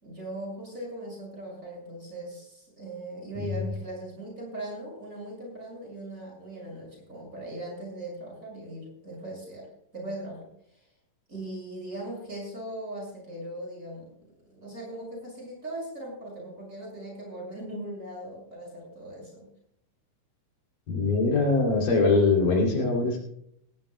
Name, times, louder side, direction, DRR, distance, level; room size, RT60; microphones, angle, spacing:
voice 1, 0.0-10.8 11.3-19.5, right 1 dB, 20° right, -2 dB, 6.5 m, -39 dB
voice 2, 20.9-23.2, left 3 dB, 85° left, 1 dB, 4.4 m, -22 dB
18.0 x 17.0 x 2.2 m, 0.71 s
omnidirectional pair, 3.8 m